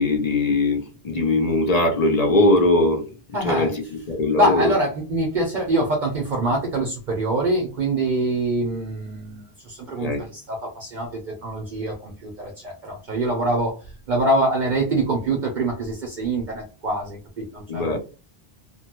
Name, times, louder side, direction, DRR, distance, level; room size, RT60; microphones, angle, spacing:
voice 1, 0.0-3.0 3.4-4.7 10.0-10.2 17.7-18.0, left 2 dB, 45° left, 0.6 m, -20 dB
voice 2, 3.3-3.7 4.4-13.8 14.1-18.0, right 1 dB, 55° right, 0.7 m, -24 dB
2.8 x 2.3 x 2.9 m
omnidirectional pair, 1.0 m